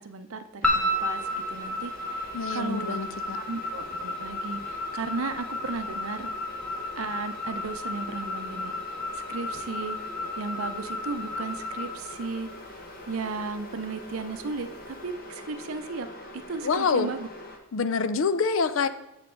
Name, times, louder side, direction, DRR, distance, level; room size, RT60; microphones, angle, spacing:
voice 1, 0.0-3.0 3.4-6.3 7.0-8.8 9.1-10.0 10.4-12.5 13.1-16.1 16.3-17.3, right 4 dB, 75° right, 10 dB, 0.6 m, -35 dB
sound 1, 0.6-17.6, left 1 dB, 40° left, 1.1 m, -44 dB
sound 2, 0.6-12.9, left 2 dB, 5° left, 0.9 m, -33 dB
voice 2, 2.3-3.4 16.6-17.1 17.7-18.9, left 5 dB, 60° left, 13 dB, 0.5 m, -26 dB
7.9 x 6.9 x 3.8 m, 0.93 s
head